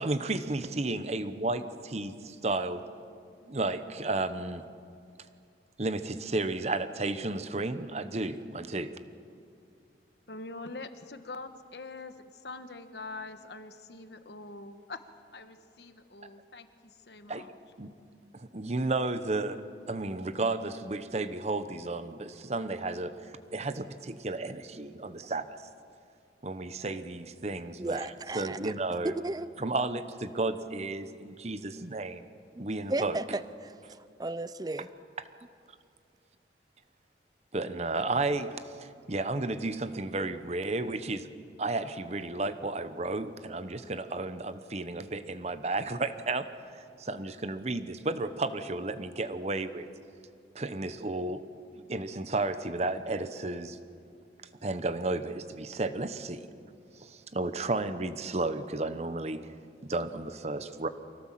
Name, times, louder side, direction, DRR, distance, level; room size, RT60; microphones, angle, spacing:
voice 1, 0.0-2.8 3.5-4.6 5.8-8.9 17.3-17.5 17.8-17.9 18.3-25.4 26.4-28.1 28.3-29.1 29.6-32.2 32.6-33.2 37.5-41.3 41.6-46.5 47.0-49.9 50.5-51.4 51.7-53.8 54.6-56.5 56.9-59.5 59.8-60.9, right 2 dB, 40° right, 11 dB, 0.9 m, -33 dB
voice 2, 10.3-15.0 15.3-17.5, left 3 dB, 75° left, 9 dB, 1.2 m, -44 dB
voice 3, 27.8-28.7 29.0-29.5 32.5-34.9, right 2 dB, 20° right, 15 dB, 0.5 m, -35 dB
24.5 x 17.0 x 7.6 m, 2.4 s
head